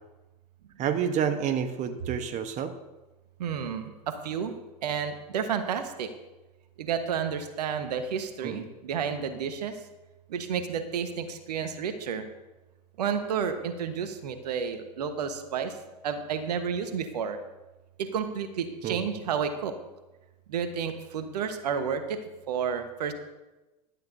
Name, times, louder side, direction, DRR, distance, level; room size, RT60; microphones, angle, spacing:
voice 1, 0.8-2.7 8.4-8.6 18.8-19.0, right 8 dB, 35° right, 9 dB, 1.0 m, -29 dB
voice 2, 3.4-4.5 4.8-6.1 6.8-9.8 10.3-12.2 13.0-15.7 16.0-17.4 18.0-19.8 20.5-23.1, right 7 dB, 70° right, 8 dB, 1.3 m, -31 dB
15.5 x 12.0 x 2.7 m, 1.1 s
hypercardioid pair, 90°, 21 cm